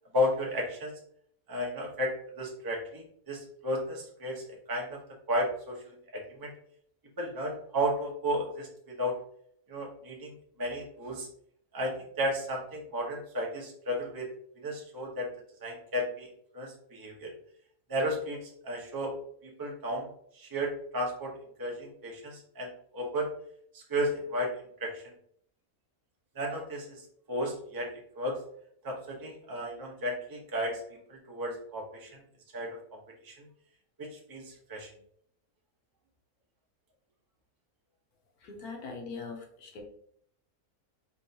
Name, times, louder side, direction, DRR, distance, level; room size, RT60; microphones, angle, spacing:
voice 1, 0.1-0.9 1.5-5.0 5.3-6.5 7.2-9.2 9.7-11.3 11.7-14.3 14.5-15.3 15.6-17.3 17.9-19.1 19.4-20.1 20.3-23.3 23.7-24.5 24.8-25.1 26.3-28.4 28.8-30.8 31.1-32.2 32.5-33.5 34.0-34.9, equal, 20° right, -1 dB, 0.8 m, -34 dB
voice 2, 38.4-39.8, left 4 dB, 90° left, 2 dB, 1.5 m, -41 dB
4.5 x 3.5 x 2.8 m, 0.65 s
omnidirectional pair, 1.6 m